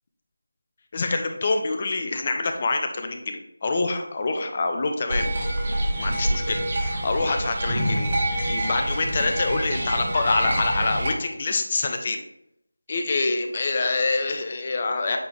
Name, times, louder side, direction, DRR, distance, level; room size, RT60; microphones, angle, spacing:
voice 1, 0.9-5.3 6.0-8.1 8.4-12.2 12.9-15.2, left 3 dB, 30° left, 5 dB, 0.7 m, -26 dB
sound 1, 5.1-11.1, right 1 dB, 35° right, 1.5 m, -26 dB
8.1 x 4.0 x 3.3 m, 0.79 s
figure-of-eight pair, 170°, 0 cm